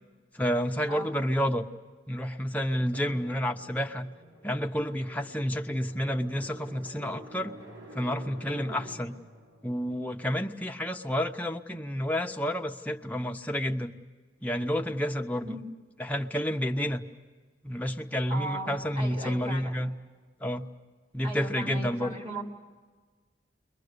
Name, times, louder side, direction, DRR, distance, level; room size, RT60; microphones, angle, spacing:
voice 1, 0.3-1.6 2.1-4.1 4.4-7.6 7.9-9.2 9.6-14.0 14.4-15.6 16.0-17.1 17.6-19.9 20.4-20.7 21.1-22.1, equal, 10° left, 3 dB, 0.8 m, -30 dB
Drum, 2.9-11.2, right 1 dB, 70° right, 6.0 m, -49 dB
voice 2, 18.3-19.8 21.2-22.4, right 1 dB, 30° right, -1 dB, 3.2 m, -37 dB
29.5 x 23.0 x 6.7 m, 1.4 s
head